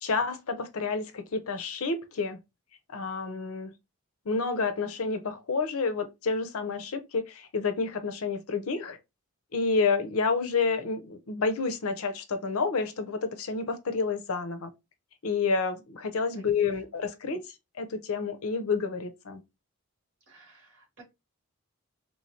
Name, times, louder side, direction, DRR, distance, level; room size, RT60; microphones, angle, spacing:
voice 1, 0.0-2.4 2.9-3.7 4.3-9.0 9.5-14.7 15.2-17.4 17.8-19.4, left 4 dB, 80° left, 0.6 m, -29 dB
voice 2, 16.4-16.9 20.3-21.0, right 3 dB, 55° right, 2.1 m, -54 dB
3.3 x 3.1 x 2.7 m
head